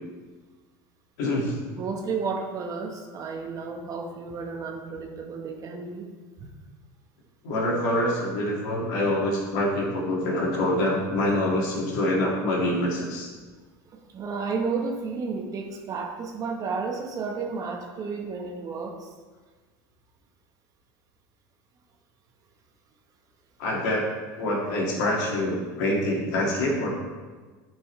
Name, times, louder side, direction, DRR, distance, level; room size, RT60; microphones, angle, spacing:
voice 1, 1.2-1.6 7.4-13.3 23.6-24.1 24.4-26.9, left 1 dB, 80° left, -2 dB, 2.1 m, -25 dB
voice 2, 1.8-6.1 6.4-6.5 13.9-19.1, right 4 dB, 40° right, 2 dB, 1.1 m, -32 dB
10.0 x 5.4 x 3.2 m, 1.4 s
supercardioid pair, 115°, 10 cm